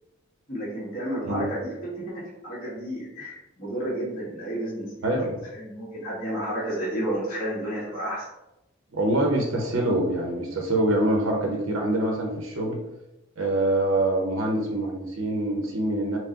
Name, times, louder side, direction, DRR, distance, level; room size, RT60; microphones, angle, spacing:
voice 1, 0.5-5.2 5.5-8.2, right 1 dB, 40° left, -10 dB, 1.3 m, -31 dB
voice 2, 5.0-5.4 8.9-12.8 13.4-16.2, right 1 dB, 75° right, 1 dB, 0.8 m, -25 dB
4.6 x 2.2 x 3.7 m, 0.90 s
head